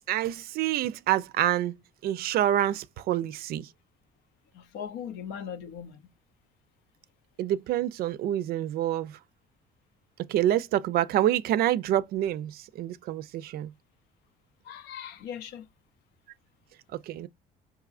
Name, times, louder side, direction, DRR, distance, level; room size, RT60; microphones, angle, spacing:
voice 1, 0.1-1.8 2.0-3.7 7.4-9.2 10.3-13.7 16.9-17.3, right 12 dB, 65° right, 0.4 m, -27 dB
voice 2, 4.5-6.0 14.6-15.7, left 8 dB, 85° left, 0.5 m, -39 dB
4.8 x 2.7 x 2.4 m
cardioid pair, 110°, 17 cm